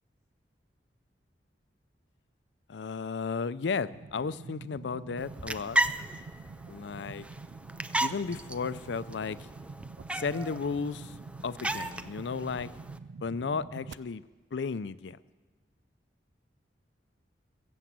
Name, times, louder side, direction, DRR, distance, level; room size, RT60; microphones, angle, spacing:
voice 1, 2.7-5.8 6.7-7.3 8.0-9.4 10.1-11.1 11.4-12.7 13.2-14.2 14.5-15.2, left 5 dB, 80° left, 16 dB, 0.5 m, -34 dB
sound 1, 3.9-13.9, right 4 dB, 85° right, 0.4 m, -46 dB
sound 2, 5.2-13.0, right 1 dB, 5° right, 0.4 m, -35 dB
20.5 x 8.1 x 7.5 m, 1.3 s
head